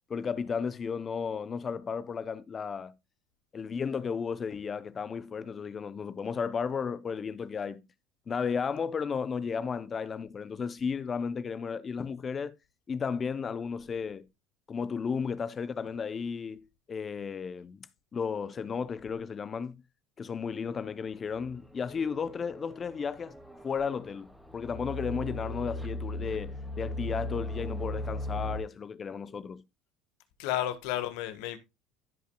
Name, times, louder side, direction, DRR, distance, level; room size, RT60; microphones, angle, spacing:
voice 1, 0.1-2.9 3.5-7.9 8.3-12.6 12.9-14.2 14.7-17.9 18.1-19.8 20.2-23.4 23.6-29.6, left 6 dB, 35° left, 0.6 m, -34 dB
sound 1, 21.3-28.6, left 1 dB, ahead, 2.1 m, -38 dB
voice 2, 30.4-31.6, left 13 dB, 75° left, 1.4 m, -32 dB
16.0 x 5.5 x 2.2 m
supercardioid pair, 85°, 0 cm